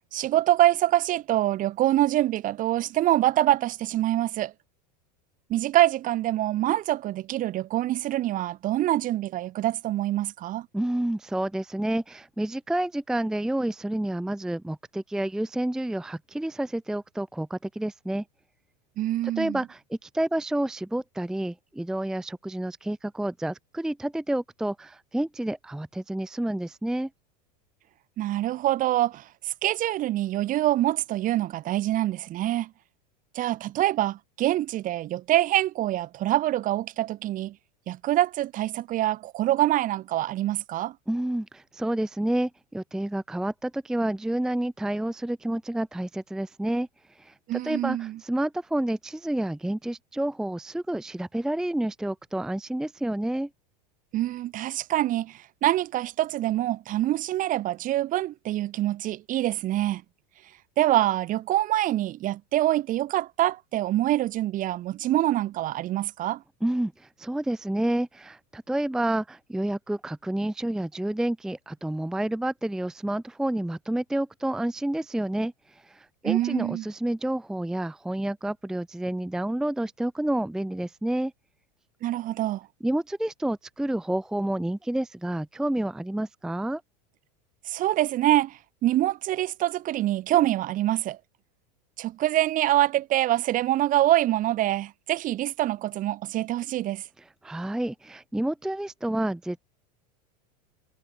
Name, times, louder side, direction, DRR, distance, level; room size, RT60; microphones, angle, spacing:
voice 1, 0.1-4.5 5.5-10.7 19.0-19.6 28.2-32.7 33.3-37.5 37.9-40.9 47.5-48.2 54.1-60.0 60.8-66.4 76.2-76.8 82.0-82.7 87.7-91.2 92.0-97.0, right 14 dB, 40° right, 1.3 m, -25 dB
voice 2, 10.7-18.2 19.4-27.1 41.1-46.9 47.2-53.5 66.6-75.5 75.8-81.3 82.8-86.8 97.4-99.6, right 1 dB, 5° right, 0.6 m, -29 dB
hypercardioid pair, 110°, 21 cm